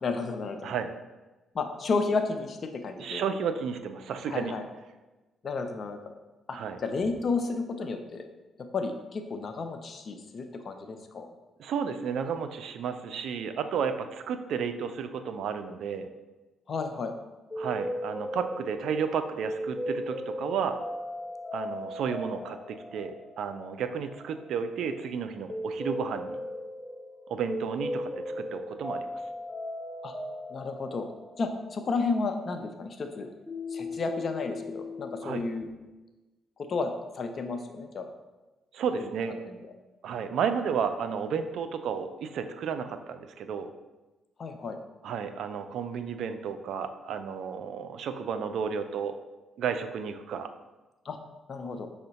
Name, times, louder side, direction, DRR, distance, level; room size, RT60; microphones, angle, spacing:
voice 1, 0.0-0.7 1.5-3.2 4.3-4.6 5.4-6.1 6.5-8.3 8.7-11.3 16.7-17.1 30.0-30.1 30.5-31.1 31.4-33.3 33.7-35.7 36.7-38.1 39.0-39.1 39.5-39.6 44.4-44.8 51.0-51.2 51.5-51.9, left 4 dB, 50° left, 6 dB, 0.5 m, -32 dB
voice 2, 3.0-4.5 6.5-6.8 11.6-16.1 17.6-20.8 21.5-26.4 27.3-29.2 35.2-35.4 38.7-39.4 40.0-43.7 45.0-49.2 49.6-50.5, right 6 dB, 75° right, 9 dB, 0.3 m, -32 dB
sound 1, 17.5-33.1 33.5-35.4, left 1 dB, 5° left, 0.9 m, -37 dB
5.5 x 2.1 x 3.9 m, 1.1 s
cardioid pair, 90°, 0 cm